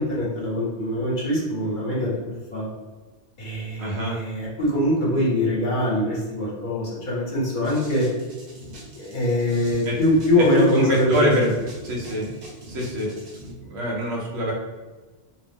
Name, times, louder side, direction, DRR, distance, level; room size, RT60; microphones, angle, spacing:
voice 1, 0.0-2.6 3.4-8.1 8.9-11.5, left 1 dB, 50° left, -6 dB, 0.9 m, -23 dB
voice 2, 3.8-4.2 9.8-10.0 10.4-11.5 11.8-12.3 12.7-13.1 13.6-14.5, equal, 80° right, -2 dB, 1.0 m, -24 dB
sound 1, 7.6-13.5, right 1 dB, 50° right, 0.7 m, -42 dB
2.6 x 2.0 x 3.4 m, 1.3 s
omnidirectional pair, 1.1 m